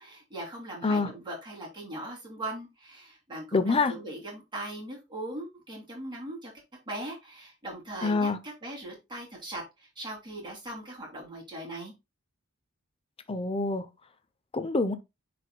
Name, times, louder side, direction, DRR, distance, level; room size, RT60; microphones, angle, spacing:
voice 1, 0.0-6.5 6.9-11.9, right 1 dB, 20° right, 2.9 m, -40 dB
voice 2, 3.5-3.9 8.0-8.4 13.3-13.9 14.5-14.9, left 3 dB, 25° left, 0.6 m, -26 dB
10.0 x 4.2 x 2.2 m
head